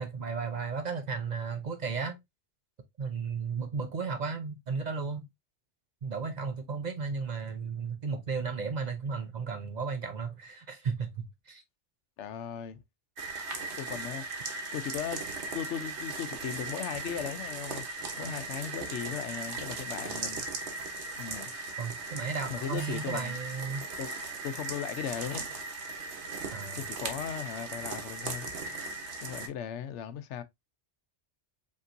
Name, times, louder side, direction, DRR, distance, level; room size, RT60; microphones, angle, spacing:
voice 1, 0.0-2.2 3.0-5.3 6.0-11.6 21.8-23.9 26.5-26.8, right 5 dB, 45° right, 0.7 m, -34 dB
voice 2, 12.2-12.8 13.8-14.2 14.7-15.2 15.5-17.8 18.2-20.4 21.2-21.5 22.5-23.4 24.0-24.1 24.4-25.5 26.7-28.5 29.2-30.4, left 8 dB, 85° left, 0.9 m, -37 dB
sound 1, 13.2-29.5, right 3 dB, 70° right, 1.2 m, -38 dB
sound 2, 19.0-19.3 19.9-20.2 20.8-21.7 22.8-23.4 24.0-24.5 26.3-26.4, right 1 dB, 20° right, 2.0 m, -54 dB
5.3 x 2.9 x 2.5 m
omnidirectional pair, 1.2 m